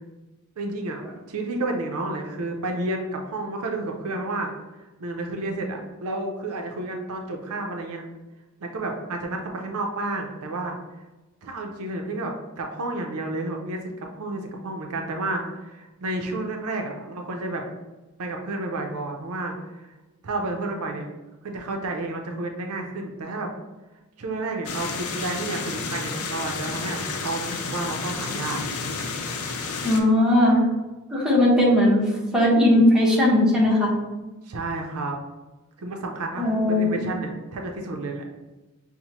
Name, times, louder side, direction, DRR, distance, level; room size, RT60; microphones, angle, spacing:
voice 1, 0.6-4.5 5.0-8.0 8.6-10.8 11.4-17.6 18.2-19.9 20.2-21.1 21.4-23.5 24.2-28.6 34.5-35.2 35.8-38.2, right 2 dB, 75° right, 2 dB, 0.5 m, -31 dB
sound 1, 24.6-30.0, left 4 dB, 80° left, 0.5 m, -31 dB
voice 2, 29.8-30.6 31.1-32.0 32.3-33.9 36.4-37.0, left 1 dB, 5° right, -5 dB, 0.8 m, -18 dB
5.5 x 2.1 x 2.9 m, 1.1 s
head